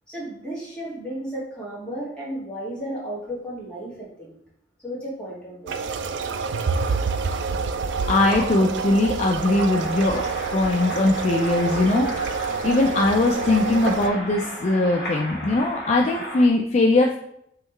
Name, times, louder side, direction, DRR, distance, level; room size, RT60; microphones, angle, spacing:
voice 1, 0.1-4.4 4.8-5.8, equal, 5° left, -7 dB, 1.6 m, -34 dB
sound 1, 5.7-14.1, right 5 dB, 75° right, 0.4 m, -27 dB
sound 2, 7.2-16.5, equal, 70° left, 1.5 m, -36 dB
voice 2, 8.1-10.3 10.5-17.2, left 2 dB, 40° left, 1 dB, 0.4 m, -21 dB
3.7 x 3.1 x 4.3 m, 0.73 s
head